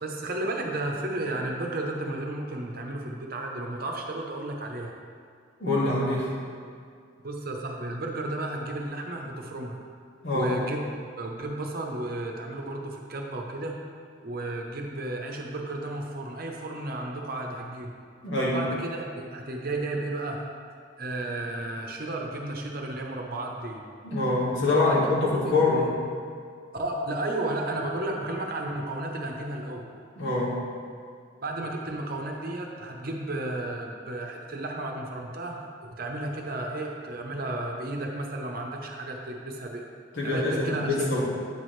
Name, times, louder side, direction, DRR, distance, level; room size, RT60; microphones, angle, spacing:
voice 1, 0.0-4.9 7.2-9.8 10.3-10.9 11.2-13.8 14.2-17.9 18.4-20.4 21.0-23.8 24.8-25.0 25.3-25.5 26.7-29.8 31.4-35.6 36.0-39.8 40.2-40.9, right 2 dB, 50° right, 1 dB, 0.8 m, -33 dB
voice 2, 5.6-6.3 10.2-10.6 18.2-18.6 24.0-25.9 30.2-30.5 40.1-41.3, left 2 dB, 70° left, -6 dB, 2.0 m, -25 dB
8.8 x 6.1 x 3.2 m, 2.2 s
head